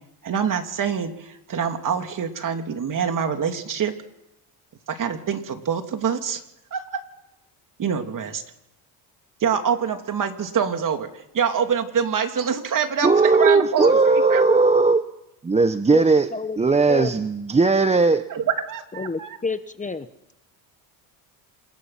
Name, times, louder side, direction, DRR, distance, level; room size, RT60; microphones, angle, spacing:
voice 1, 0.2-3.9 4.9-6.4 6.7-7.0 7.8-8.4 9.4-11.1 11.3-14.0 14.3-14.4 18.3-19.3, right 7 dB, 40° right, 6 dB, 2.9 m, -25 dB
voice 2, 13.0-15.0 15.4-16.3 16.6-18.2, right 3 dB, 15° right, 10 dB, 0.8 m, -18 dB
voice 3, 18.9-20.0, left 4 dB, 15° left, 10 dB, 1.1 m, -28 dB
27.0 x 21.5 x 5.9 m, 0.87 s
cardioid pair, 105°, 47 cm